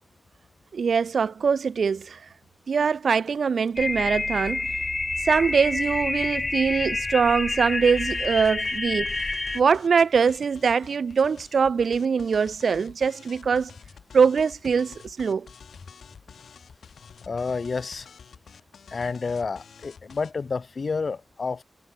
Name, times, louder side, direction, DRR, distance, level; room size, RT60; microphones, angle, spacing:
voice 1, 0.7-2.2 2.7-4.6 5.2-9.1 9.5-13.7 14.1-15.5, right 6 dB, 70° right, 1.7 m, -23 dB
sound 1, 3.8-9.6, left 3 dB, 30° left, 2.4 m, -28 dB
sound 2, 8.0-20.3, left 6 dB, 80° left, 6.5 m, -49 dB
voice 2, 17.3-18.1 18.9-21.6, left 4 dB, 50° left, 3.1 m, -29 dB
wide cardioid pair, 100°, 0 cm